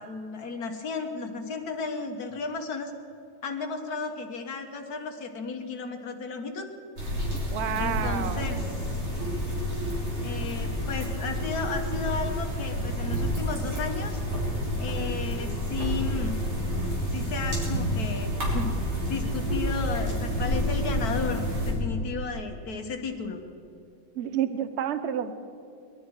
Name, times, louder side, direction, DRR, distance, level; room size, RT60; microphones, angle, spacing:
voice 1, 0.0-2.9 3.4-6.7 7.8-8.9 10.2-14.2 14.8-16.3 17.1-18.7 19.1-23.4, left 4 dB, 55° left, 4 dB, 1.6 m, -34 dB
sound 1, 7.0-21.7, equal, 85° right, 4.4 m, -29 dB
voice 2, 7.5-8.6 24.1-25.3, right 9 dB, 60° right, 11 dB, 0.7 m, -29 dB
20.5 x 12.5 x 4.8 m, 2.6 s
omnidirectional pair, 2.1 m